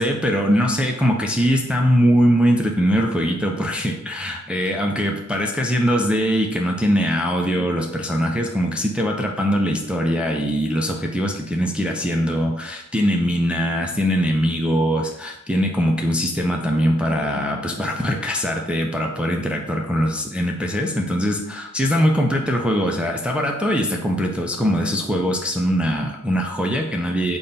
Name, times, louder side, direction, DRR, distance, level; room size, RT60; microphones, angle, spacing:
voice 1, 0.0-27.4, equal, 5° right, 2 dB, 0.4 m, -21 dB
3.7 x 2.2 x 3.9 m, 0.86 s
wide cardioid pair, 85°, 31 cm